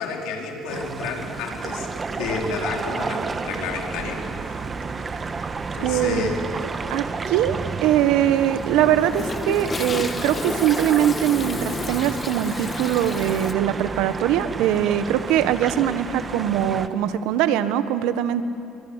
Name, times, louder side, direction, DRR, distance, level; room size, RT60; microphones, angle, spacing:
voice 1, 0.0-4.3 5.7-6.4, left 4 dB, 85° left, 1 dB, 4.5 m, -30 dB
sound 1, 0.7-16.9, right 4 dB, 30° right, 1.4 m, -31 dB
voice 2, 5.8-6.3 6.9-18.4, right 11 dB, 90° right, 11 dB, 1.4 m, -22 dB
Toilet flush, 8.3-13.5, left 4 dB, 25° left, 1.5 m, -32 dB
29.5 x 24.0 x 8.2 m, 2.8 s
cardioid pair, 110°, 0 cm